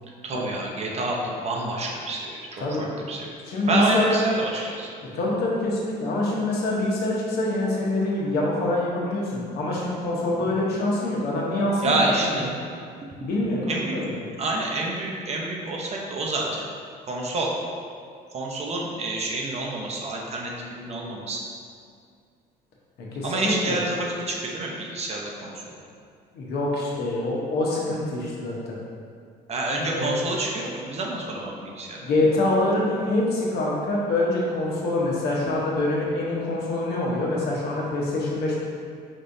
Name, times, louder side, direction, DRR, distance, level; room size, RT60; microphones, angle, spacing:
voice 1, 0.2-3.2 3.7-4.9 11.8-12.4 13.7-14.0 14.4-16.5 17.1-17.5 18.3-21.4 23.2-25.5 29.5-32.0, right 2 dB, 40° right, -2 dB, 0.7 m, -28 dB
voice 2, 3.4-4.2 5.1-12.5 13.2-14.2 23.1-23.8 26.3-28.8 29.7-30.2 32.0-38.6, left 2 dB, 70° left, -4 dB, 1.0 m, -25 dB
5.3 x 3.2 x 2.6 m, 2.2 s
cardioid pair, 110°, 17 cm